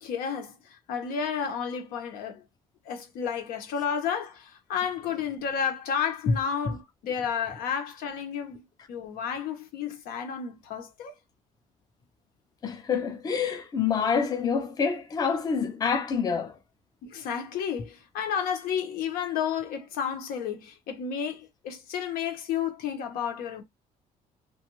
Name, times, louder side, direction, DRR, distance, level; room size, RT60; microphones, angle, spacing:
voice 1, 0.0-2.4 2.8-11.1 17.0-23.6, left 7 dB, 85° left, 0.9 m, -32 dB
voice 2, 12.6-16.6, left 6 dB, 25° left, 0.5 m, -27 dB
2.5 x 2.3 x 2.9 m
cardioid pair, 135°, 15 cm